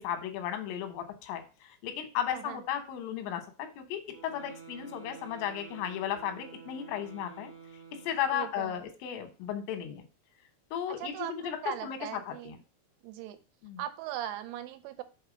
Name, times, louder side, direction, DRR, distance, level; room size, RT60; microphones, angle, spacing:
voice 1, 0.0-7.5 8.0-10.0 10.7-11.6 11.8-12.0 12.3-12.6 13.6-13.8, left 9 dB, 90° left, 6 dB, 3.6 m, -35 dB
sound 1, 4.0-8.6, right 6 dB, 60° right, 0.7 m, -50 dB
voice 2, 8.3-8.9 10.9-12.6 13.0-13.4 13.8-15.0, right 12 dB, 85° right, 10 dB, 3.1 m, -39 dB
7.2 x 3.2 x 5.0 m, 0.33 s
omnidirectional pair, 5.6 m